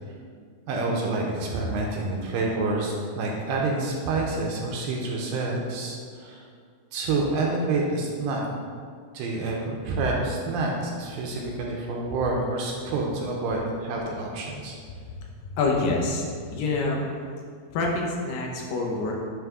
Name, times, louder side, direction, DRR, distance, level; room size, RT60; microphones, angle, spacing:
voice 1, 0.7-6.4 6.9-8.5 9.1-14.8, right 3 dB, 80° right, -1 dB, 2.2 m, -28 dB
voice 2, 15.4-17.1 17.7-19.1, left 3 dB, 75° left, -1 dB, 2.2 m, -26 dB
8.8 x 3.2 x 3.5 m, 2.1 s
omnidirectional pair, 4.3 m